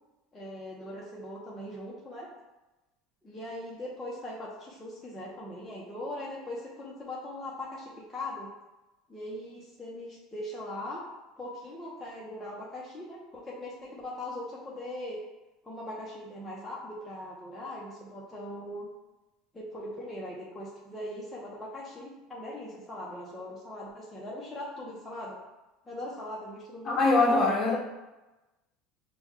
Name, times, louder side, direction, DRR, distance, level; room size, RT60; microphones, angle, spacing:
voice 1, 0.3-2.3 3.2-8.5 9.1-11.0 11.4-15.2 15.6-18.9 19.5-25.4 25.9-27.5, left 1 dB, 10° left, -6 dB, 0.9 m, -40 dB
voice 2, 26.8-27.8, left 3 dB, 30° left, -2 dB, 1.3 m, -23 dB
5.9 x 2.4 x 3.7 m, 1.1 s
supercardioid pair, 120°, 0 cm